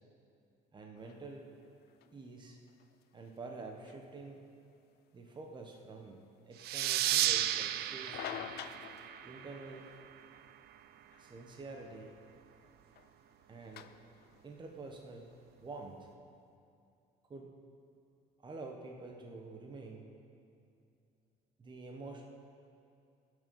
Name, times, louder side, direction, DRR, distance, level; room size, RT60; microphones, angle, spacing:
voice 1, 0.7-1.5 2.1-2.6 3.1-4.4 5.1-6.2 6.5-8.5 9.2-9.9 11.2-12.2 13.5-13.9 14.4-16.1 17.3-17.6 18.4-20.1 21.6-22.3, right 3 dB, 25° right, 1 dB, 1.2 m, -48 dB
sound 1, 0.9-16.1, left 10 dB, 70° left, 0.6 m, -52 dB
sound 2, 6.6-9.9, right 13 dB, 70° right, 0.5 m, -33 dB
19.0 x 6.4 x 5.5 m, 2.5 s
cardioid pair, 110°, 17 cm